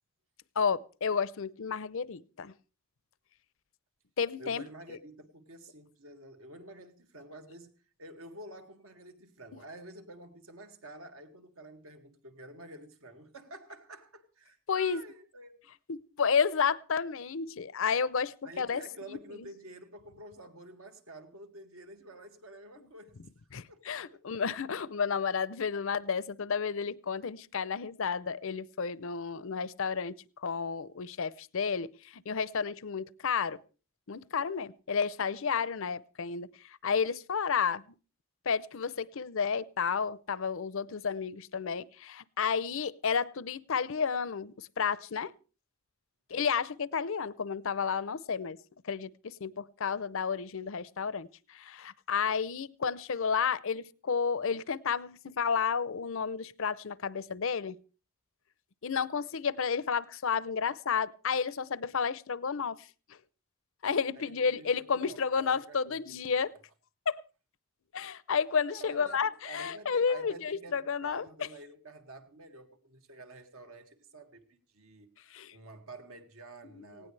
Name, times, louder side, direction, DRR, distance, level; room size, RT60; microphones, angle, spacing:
voice 1, 0.6-2.5 4.2-4.6 14.7-15.0 15.9-18.8 19.1-19.2 23.5-30.1 30.4-33.6 34.1-36.5 36.8-37.8 38.5-45.3 46.3-48.6 48.8-57.8 58.8-62.8 63.8-66.5 67.1-67.2 67.9-71.2 75.3-75.5 76.8-77.1, left 6 dB, 65° left, 0.6 m, -31 dB
voice 2, 4.4-7.7 8.0-15.5 18.4-23.2 23.7-24.4 64.2-66.5 68.7-75.1 75.5-77.1, right 1 dB, 70° right, 2.0 m, -49 dB
18.5 x 17.0 x 3.3 m
head